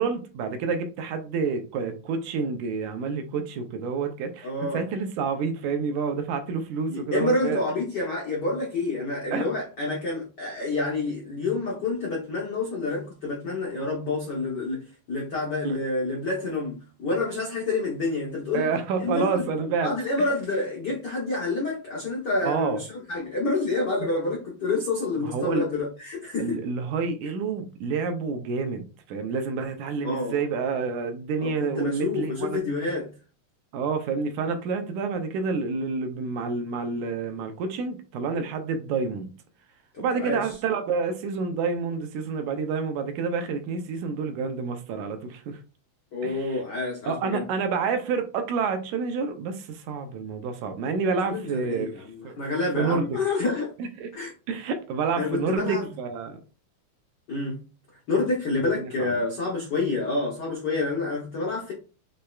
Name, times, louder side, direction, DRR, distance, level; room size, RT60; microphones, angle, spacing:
voice 1, 0.0-7.6 9.3-9.5 15.6-15.8 18.5-19.9 22.4-22.8 25.2-25.7 26.4-32.6 33.7-39.3 40.0-45.6 46.2-46.6 47.1-51.9 52.2-52.3 52.8-53.0 53.8-54.1 54.5-56.4 58.8-59.1, right 5 dB, 80° right, 1.9 m, -28 dB
voice 2, 4.4-4.8 6.9-14.8 15.1-18.7 19.0-19.5 19.8-26.6 30.0-30.4 31.4-33.1 39.9-40.4 46.1-47.4 51.3-53.7 54.1-54.3 55.2-55.9 57.3-57.6 58.1-61.7, left 3 dB, 80° left, 0.9 m, -28 dB
6.5 x 3.2 x 2.3 m
omnidirectional pair, 3.6 m